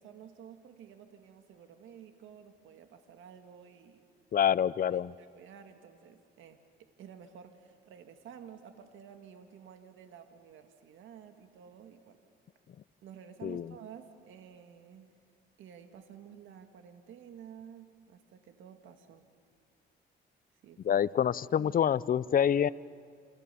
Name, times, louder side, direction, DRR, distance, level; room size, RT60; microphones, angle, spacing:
voice 1, 0.0-4.1 4.9-12.2 13.0-15.1 15.6-19.3 20.6-21.1 21.5-21.7, right 8 dB, 80° right, 7 dB, 1.9 m, -52 dB
voice 2, 4.3-5.1 13.4-13.7 20.8-22.7, left 9 dB, 45° left, 18 dB, 0.6 m, -27 dB
28.5 x 28.0 x 6.9 m, 2.3 s
cardioid pair, 90°, 20 cm